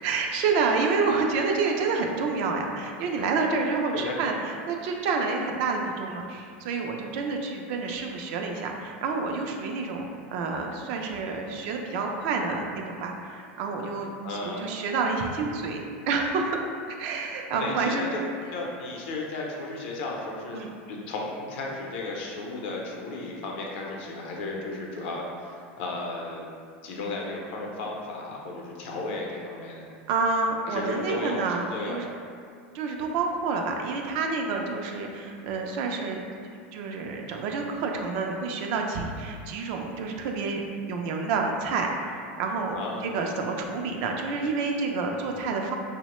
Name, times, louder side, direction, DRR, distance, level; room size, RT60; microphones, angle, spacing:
voice 1, 0.0-14.1 14.4-16.6 16.9-18.1 20.5-20.7 30.1-32.1 32.7-36.2 36.7-45.8, right 4 dB, 60° right, 2 dB, 0.3 m, -28 dB
voice 2, 3.9-4.4 14.2-14.6 17.5-18.2 18.5-20.6 20.9-26.5 26.8-29.9 30.7-32.0 42.7-43.0, left 2 dB, 65° left, -2 dB, 0.5 m, -34 dB
2.9 x 2.0 x 2.9 m, 2.2 s
supercardioid pair, 125°, 6 cm